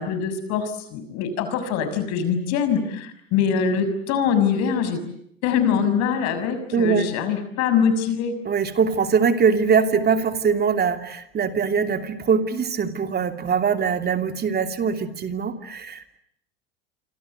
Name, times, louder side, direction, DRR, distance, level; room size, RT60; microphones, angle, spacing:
voice 1, 0.0-5.0 5.4-8.3, left 7 dB, 60° left, 10 dB, 6.6 m, -23 dB
voice 2, 6.7-7.1 8.4-16.2, right 6 dB, 35° right, 8 dB, 2.9 m, -22 dB
27.5 x 25.5 x 8.0 m, 0.71 s
hypercardioid pair, 85°, 29 cm